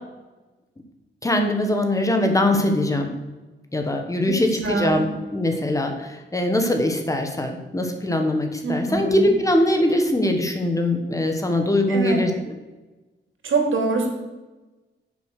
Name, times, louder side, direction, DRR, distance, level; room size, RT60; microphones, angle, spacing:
voice 1, 1.2-3.1 3.7-12.3, left 1 dB, 15° left, 4 dB, 1.4 m, -22 dB
voice 2, 4.3-5.1 8.6-9.3 11.9-12.2 13.4-14.1, right 3 dB, 90° right, 3 dB, 2.8 m, -24 dB
11.0 x 7.2 x 6.6 m, 1.2 s
wide cardioid pair, 175°, 20 cm